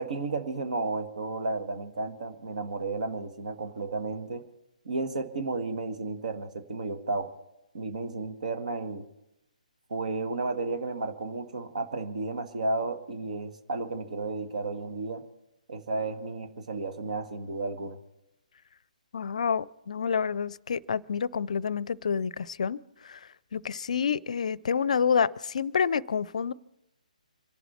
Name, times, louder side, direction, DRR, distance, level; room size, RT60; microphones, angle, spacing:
voice 1, 0.0-4.4 4.9-7.3 7.7-9.1 9.9-15.2 15.7-18.0, right 3 dB, 60° right, 7 dB, 1.9 m, -33 dB
voice 2, 19.1-22.8 23.0-23.2 23.5-26.5, left 6 dB, 55° left, 24 dB, 0.5 m, -28 dB
26.0 x 11.0 x 4.4 m, 0.90 s
figure-of-eight pair, 140°, 4 cm